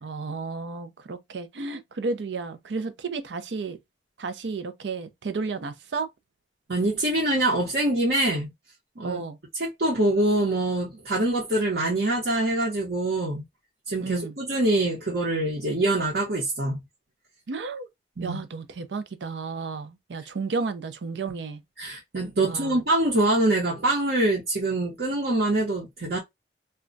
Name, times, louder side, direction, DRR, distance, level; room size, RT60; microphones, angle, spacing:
voice 1, 0.0-3.8 4.2-6.1 9.0-9.4 14.0-14.3 17.5-17.9 18.2-21.6 22.4-22.8, right 4 dB, 90° right, 0.5 m, -32 dB
voice 2, 6.7-8.5 9.0-9.2 9.6-13.4 13.9-16.8 18.2-18.4 21.8-26.2, right 1 dB, 70° right, 0.9 m, -24 dB
2.2 x 2.2 x 3.8 m
head